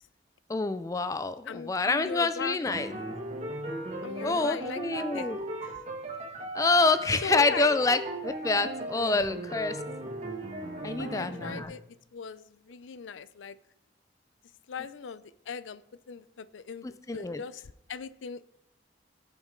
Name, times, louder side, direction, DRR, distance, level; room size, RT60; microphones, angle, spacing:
voice 1, 0.5-2.9 4.2-5.4 6.5-9.8 10.8-11.7 17.1-17.4, left 3 dB, 15° left, 11 dB, 0.3 m, -27 dB
voice 2, 1.5-2.6 4.0-4.8 5.1-5.3 5.6-5.7 7.2-7.7 11.0-11.8 12.1-13.6 14.7-15.8 16.1-16.9 17.1-17.6 17.9-18.4, left 6 dB, 90° left, 15 dB, 0.5 m, -38 dB
sound 1, 2.6-11.6, right 1 dB, 35° right, 1.3 m, -37 dB
17.0 x 6.0 x 3.7 m, 0.82 s
head